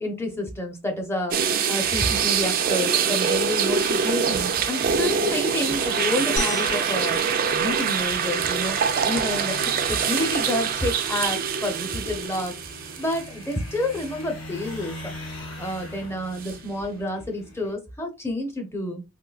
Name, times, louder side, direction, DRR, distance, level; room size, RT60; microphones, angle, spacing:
voice 1, 0.0-7.2 7.5-8.8 9.0-12.6 13.0-15.1 15.6-19.0, left 1 dB, 10° left, 0.6 m, -29 dB
sound 1, 1.3-13.5 14.0-14.1 16.4-16.5, right 7 dB, 40° right, 0.4 m, -24 dB
sound 2, 5.4-17.7, left 1 dB, 80° left, 2.0 m, -42 dB
sound 3, 6.4-8.8, left 2 dB, 50° left, 1.7 m, -35 dB
3.7 x 2.6 x 2.3 m
head